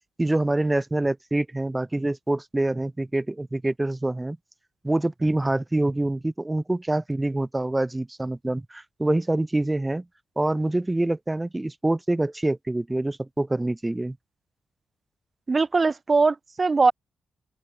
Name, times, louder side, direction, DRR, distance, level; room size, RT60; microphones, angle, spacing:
voice 1, 0.2-4.4 4.8-10.1 10.4-14.2, right 2 dB, 15° right, 1.9 m, -25 dB
voice 2, 15.5-16.9, right 4 dB, 35° right, 0.6 m, -21 dB
open air
cardioid pair, 75°, 0 cm